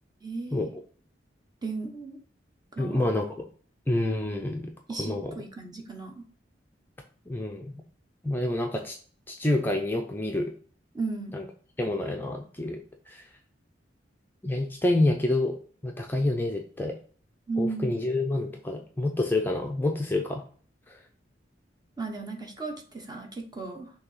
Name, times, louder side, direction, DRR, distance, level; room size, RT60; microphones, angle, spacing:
voice 1, 0.2-0.7 1.6-2.2 2.7-3.0 4.9-6.2 10.9-11.4 17.5-18.1 22.0-23.9, right 3 dB, 25° right, 3 dB, 1.2 m, -35 dB
voice 2, 2.8-3.5 3.9-4.7 5.0-5.4 7.3-7.8 8.2-9.0 9.3-10.5 11.3-11.5 11.8-12.8 13.1-13.3 14.4-15.5 15.8-17.0 17.6-20.4 20.9-21.0, left 2 dB, 10° left, 2 dB, 0.6 m, -28 dB
6.3 x 2.9 x 5.6 m, 0.43 s
head